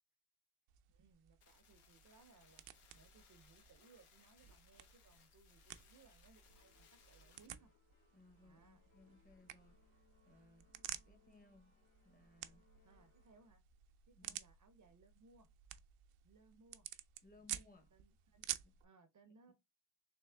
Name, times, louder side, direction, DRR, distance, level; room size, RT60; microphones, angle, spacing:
sound 1, 0.7-18.8, right 12 dB, 85° right, 0.6 m, -53 dB
voice 1, 0.9-2.6 2.9-7.7 8.4-8.8 12.8-13.6 14.1-15.5 16.2-16.9 17.4-17.5 17.9-18.5 18.8-19.5, right 4 dB, 40° right, 0.5 m, -67 dB
sound 2, 1.4-7.5, left 7 dB, 85° left, 0.9 m, -68 dB
sound 3, 6.4-13.5, left 5 dB, 65° left, 2.1 m, -75 dB
voice 2, 8.1-9.8 10.2-10.7 11.0-11.7 12.0-12.7 14.1-14.4 17.2-17.9 18.6-18.7, left 2 dB, 20° left, 0.7 m, -65 dB
3.4 x 3.1 x 3.2 m
wide cardioid pair, 120°, 49 cm